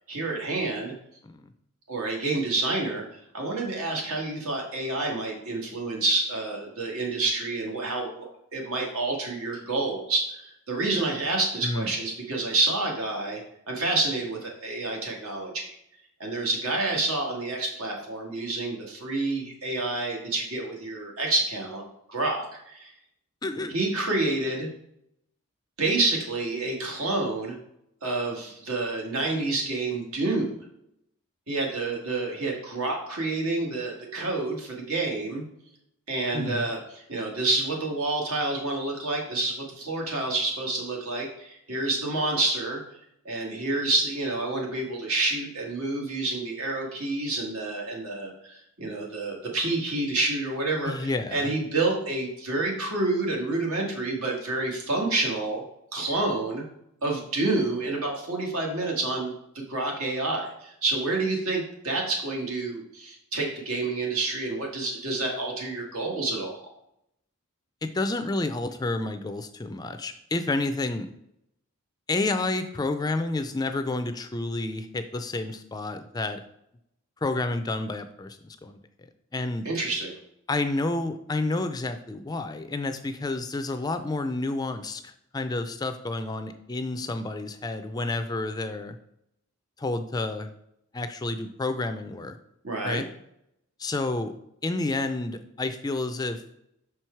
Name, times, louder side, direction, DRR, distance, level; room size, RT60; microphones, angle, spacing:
voice 1, 0.1-0.9 1.9-15.7 16.2-21.8 22.1-22.9 23.7-24.7 25.8-27.6 28.0-30.5 31.5-35.4 36.1-42.8 43.3-55.6 55.9-56.6 57.0-66.7 79.7-80.1 92.6-93.0, right 2 dB, 85° right, 0 dB, 1.8 m, -28 dB
voice 2, 11.6-11.9 23.4-23.7 36.3-36.7 50.9-51.5 67.8-71.1 72.1-76.4 77.2-78.8 79.3-79.7 80.5-89.0 89.8-90.5 90.9-92.4 92.8-93.1 93.8-94.3 94.6-96.4, left 2 dB, 20° left, 9 dB, 0.3 m, -30 dB
6.2 x 4.6 x 4.5 m, 0.77 s
head